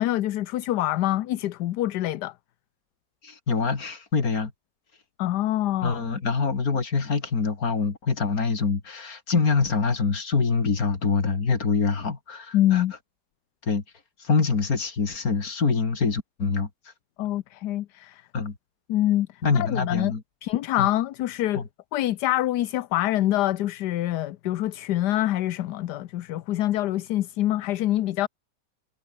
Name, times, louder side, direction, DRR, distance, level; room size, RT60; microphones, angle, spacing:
voice 1, 0.0-2.3 5.2-6.0 12.5-12.9 17.2-18.2 18.9-20.1 20.4-21.6 21.9-28.3, left 14 dB, 70° left, 1.2 m, -25 dB
voice 2, 3.2-4.5 5.8-12.8 13.6-13.8 14.2-16.7 18.3-18.5 19.4-20.2 20.8-20.9 21.5-21.6, left 4 dB, 50° left, 3.0 m, -25 dB
omnidirectional pair, 1.9 m